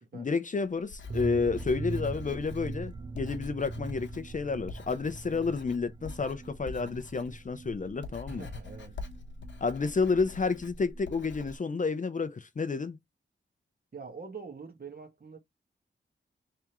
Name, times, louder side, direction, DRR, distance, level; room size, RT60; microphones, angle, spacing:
voice 1, 0.1-8.5 9.6-13.0, left 4 dB, 40° left, 0.6 m, -30 dB
Writing, 0.8-11.6, left 3 dB, 70° left, 1.1 m, -45 dB
sound 1, 1.1-10.7 11.0-11.1 11.3-11.4, right 3 dB, 20° right, 0.3 m, -41 dB
voice 2, 8.3-9.0 13.9-15.4, right 5 dB, 50° right, 1.6 m, -44 dB
3.6 x 3.4 x 3.0 m
wide cardioid pair, 85°, 20 cm